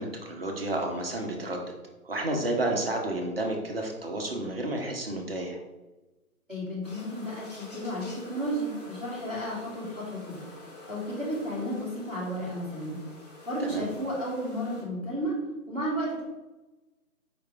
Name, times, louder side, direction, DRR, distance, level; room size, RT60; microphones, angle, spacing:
voice 1, 0.0-1.6 2.0-5.6 13.6-13.9, right 1 dB, 40° right, 2 dB, 0.8 m, -31 dB
voice 2, 6.5-10.4 10.9-13.0 13.4-15.3 15.7-16.2, equal, ahead, -19 dB, 1.0 m, -33 dB
sound 1, 6.8-14.8, left 2 dB, 25° left, 1.0 m, -47 dB
4.9 x 3.2 x 3.4 m, 1.1 s
figure-of-eight pair, 145°, 45 cm